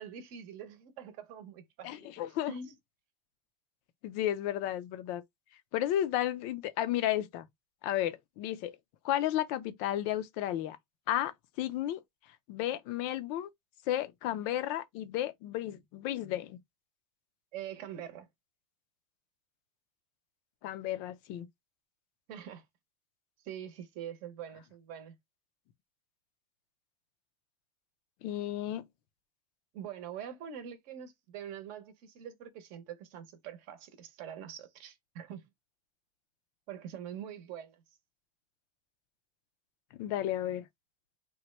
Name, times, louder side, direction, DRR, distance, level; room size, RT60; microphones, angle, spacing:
voice 1, 0.0-2.1 2.5-2.7 17.5-18.3 22.3-22.6 23.4-25.2 29.7-35.5 36.7-37.8, right 8 dB, 45° right, 0.8 m, -44 dB
voice 2, 1.8-2.5 4.0-5.2 5.7-7.5 7.8-8.7 9.0-10.8 11.1-12.0 12.5-13.5 13.9-16.6 20.6-21.5 28.2-28.8 39.9-40.6, left 12 dB, 45° left, 0.5 m, -33 dB
3.0 x 2.2 x 3.1 m
supercardioid pair, 140°, 19 cm